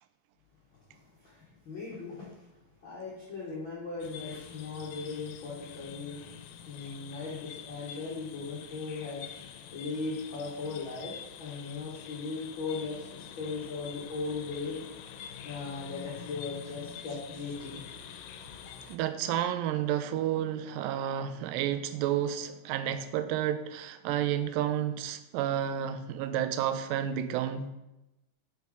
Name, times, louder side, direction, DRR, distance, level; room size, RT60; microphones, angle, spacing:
voice 1, 1.2-2.5 2.8-6.2 6.7-9.3 9.7-14.8 15.4-17.8, left 4 dB, 70° left, -6 dB, 1.1 m, -38 dB
sound 1, 4.0-19.0, left 8 dB, 90° left, 2.3 m, -46 dB
voice 2, 18.9-27.7, right 10 dB, 85° right, 10 dB, 2.2 m, -31 dB
5.4 x 4.7 x 4.7 m, 0.94 s
omnidirectional pair, 3.9 m